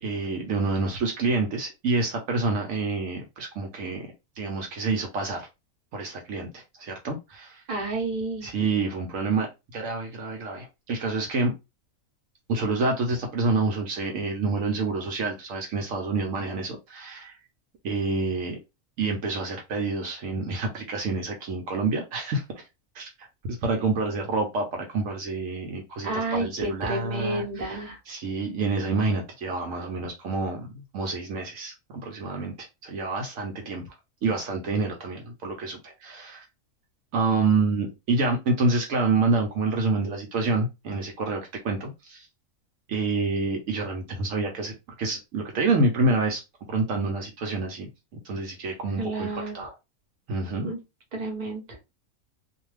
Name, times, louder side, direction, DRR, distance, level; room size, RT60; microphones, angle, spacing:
voice 1, 0.0-4.1 4.4-5.5 5.9-7.6 8.4-11.5 12.5-17.4 17.8-18.6 19.0-22.6 22.9-27.8 28.1-31.7 32.0-33.8 34.2-36.4 37.1-42.3 42.9-46.4 46.7-49.3 49.5-49.7 50.3-50.7, right 3 dB, 70° right, 0.9 m, -28 dB
voice 2, 7.7-8.5 26.0-28.0 49.0-49.6 50.6-50.8 51.1-51.8, right 2 dB, 35° right, 0.8 m, -30 dB
2.4 x 2.3 x 3.1 m
omnidirectional pair, 1.6 m